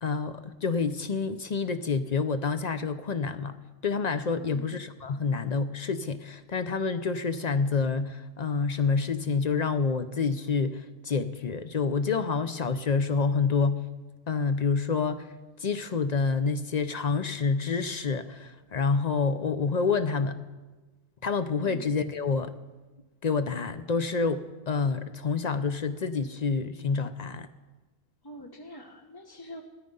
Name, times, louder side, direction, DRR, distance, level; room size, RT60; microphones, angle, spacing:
voice 1, 0.0-3.6 3.8-13.9 14.3-15.3 15.6-20.4 21.2-22.5 23.2-27.5, left 5 dB, 50° left, 11 dB, 0.5 m, -28 dB
voice 2, 4.4-4.7 21.6-21.9 28.2-29.6, equal, 20° left, 2 dB, 0.8 m, -45 dB
17.0 x 13.0 x 5.4 m, 1.2 s
omnidirectional pair, 1.5 m